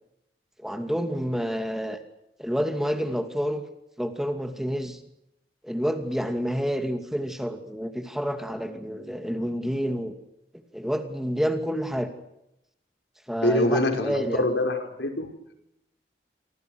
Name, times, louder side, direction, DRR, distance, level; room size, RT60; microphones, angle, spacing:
voice 1, 0.6-2.0 2.4-3.6 4.0-5.0 5.6-10.1 10.7-12.1 13.3-14.4, equal, ahead, 6 dB, 2.5 m, -28 dB
voice 2, 13.4-15.3, left 1 dB, 80° left, 6 dB, 5.6 m, -25 dB
29.0 x 25.5 x 6.6 m, 0.85 s
head